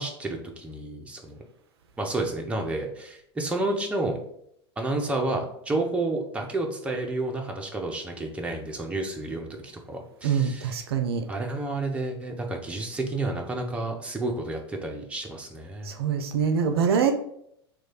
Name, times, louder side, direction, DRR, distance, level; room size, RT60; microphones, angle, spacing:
voice 1, 0.0-1.4 2.0-4.2 4.8-10.8 11.3-15.9, right 2 dB, 10° right, 2 dB, 0.6 m, -30 dB
voice 2, 10.2-11.2 16.0-17.1, right 7 dB, 65° right, 7 dB, 0.4 m, -24 dB
3.0 x 2.3 x 4.2 m, 0.72 s
figure-of-eight pair, 85°, 14 cm